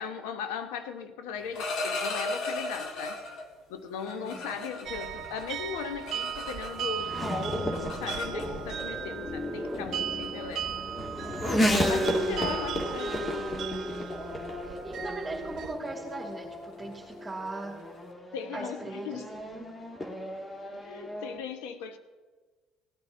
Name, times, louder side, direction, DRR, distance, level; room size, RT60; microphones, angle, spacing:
voice 1, 0.0-3.2 3.7-10.7 11.8-13.7 18.3-19.3 20.7-22.0, left 7 dB, 85° left, 8 dB, 1.0 m, -38 dB
sound 1, 1.4-3.5 4.0-7.0 7.3-8.8 9.7-9.9 10.2-10.6 11.0-11.3 11.6-11.8 12.1-12.4 12.6-18.0, left 2 dB, 65° left, 1.6 m, -38 dB
voice 2, 4.1-4.6 12.2-12.6 14.6-17.9 18.5-19.8, right 2 dB, 15° right, -3 dB, 2.1 m, -39 dB
sound 2, 4.9-15.7, right 10 dB, 60° right, 0.7 m, -37 dB
Race car auto racing / Accelerating revving vroom, 5.2-21.4, equal, 25° left, 1.8 m, -33 dB
17.0 x 9.3 x 3.8 m, 1.3 s
supercardioid pair, 70°, 0 cm